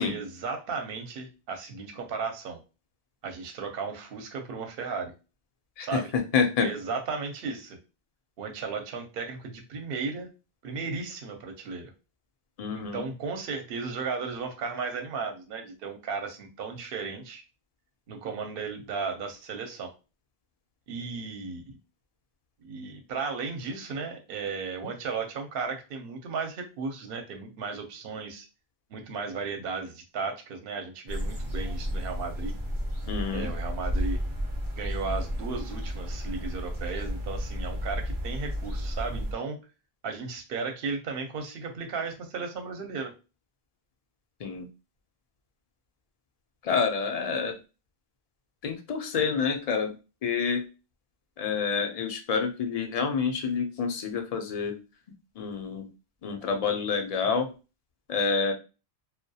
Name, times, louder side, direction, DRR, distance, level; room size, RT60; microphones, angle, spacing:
voice 1, 0.0-2.6 3.2-5.1 5.8-6.1 6.6-7.8 8.4-10.3 10.6-11.9 12.7-17.4 18.1-19.9 20.9-21.8 22.6-28.5 28.9-32.5 33.3-34.2 34.8-39.6 40.0-43.1, right 4 dB, 65° right, 4 dB, 0.8 m, -35 dB
voice 2, 5.8-6.7 12.6-13.0 33.1-33.5 44.4-44.7 46.6-47.5 48.6-49.9 50.2-50.6 51.4-54.7 55.4-55.9 56.2-57.5 58.1-58.5, left 5 dB, 55° left, 4 dB, 0.4 m, -28 dB
sound 1, 31.1-39.3, equal, 25° right, 0.5 m, -32 dB
2.2 x 2.1 x 2.7 m, 0.31 s
omnidirectional pair, 1.1 m